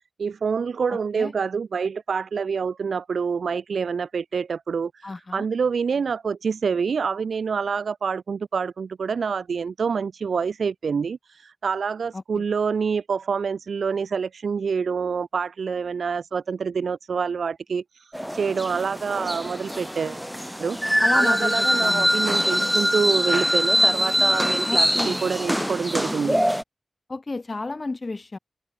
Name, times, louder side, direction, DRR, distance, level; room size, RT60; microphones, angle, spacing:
voice 1, 0.2-20.2 20.6-26.4, right 6 dB, 90° right, 0.4 m, -27 dB
voice 2, 5.0-5.5 12.1-12.4 21.0-22.1 24.7-25.2 27.1-28.4, left 3 dB, 45° left, 0.5 m, -32 dB
sound 1, 18.1-26.6, equal, 5° right, 0.6 m, -23 dB
open air
cardioid pair, 60°, 0 cm